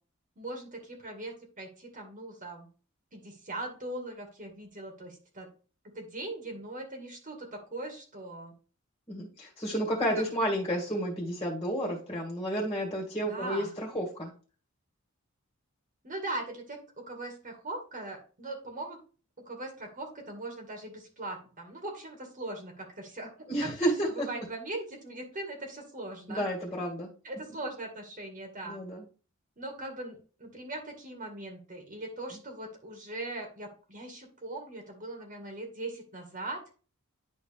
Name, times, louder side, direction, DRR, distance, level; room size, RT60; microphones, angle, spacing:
voice 1, 0.4-2.7 3.1-5.5 6.0-8.5 10.2-10.3 13.3-13.7 16.0-19.0 19.5-23.7 24.0-26.4 27.2-28.8 29.6-36.6, right 2 dB, 40° right, 2 dB, 2.1 m, -40 dB
voice 2, 9.1-14.3 23.5-24.3 26.3-27.1 28.6-29.0, equal, 20° left, -2 dB, 2.0 m, -31 dB
11.0 x 4.1 x 3.5 m, 0.37 s
head